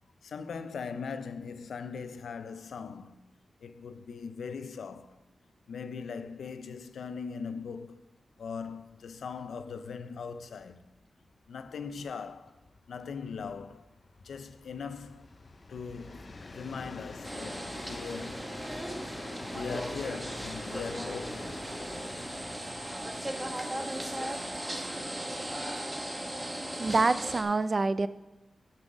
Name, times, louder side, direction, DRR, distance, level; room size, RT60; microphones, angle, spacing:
voice 1, 0.2-3.2 3.6-5.2 5.7-8.0 8.4-10.9 11.5-12.6 12.9-13.9 14.2-15.3 15.7-18.6 19.4-21.6, left 5 dB, 90° left, 0.5 m, -40 dB
Train, 9.1-9.2 9.5-26.9, left 3 dB, 40° left, 0.6 m, -48 dB
sound 1, 17.2-27.4, right 1 dB, 15° right, 1.1 m, -37 dB
voice 2, 26.8-28.1, right 3 dB, 35° right, 0.4 m, -26 dB
9.8 x 5.5 x 6.1 m
wide cardioid pair, 110°, 0 cm